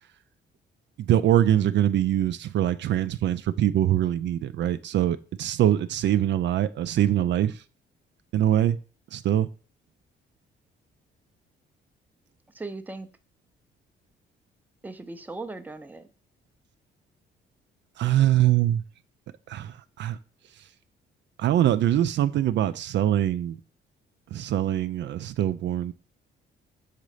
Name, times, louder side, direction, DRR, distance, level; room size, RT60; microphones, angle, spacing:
voice 1, 1.0-7.6 8.3-8.8 9.1-9.5 18.0-18.8 19.5-20.2 21.4-23.6 24.3-25.9, right 12 dB, 65° right, 0.4 m, -23 dB
voice 2, 12.5-13.1 14.8-16.1, right 3 dB, 10° right, 0.6 m, -38 dB
6.6 x 4.0 x 4.9 m
cardioid pair, 90°, 20 cm